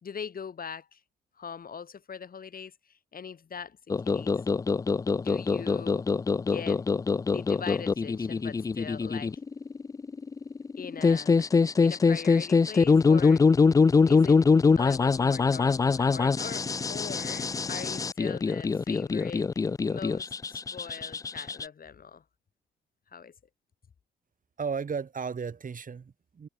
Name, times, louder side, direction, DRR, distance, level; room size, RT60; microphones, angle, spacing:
voice 1, 0.0-1.0 1.4-3.8 4.0-4.3 5.2-6.0 6.4-6.8 7.2-9.4 10.8-11.5 11.8-13.5 14.1-14.4 14.8-19.5 19.9-22.2 23.1-23.3, left 6 dB, 50° left, 5.0 m, -41 dB
sound 1, 3.9-21.6, left 4 dB, 20° left, 0.3 m, -24 dB
voice 2, 24.6-26.5, right 6 dB, 45° right, 5.6 m, -34 dB
hypercardioid pair, 50°, 19 cm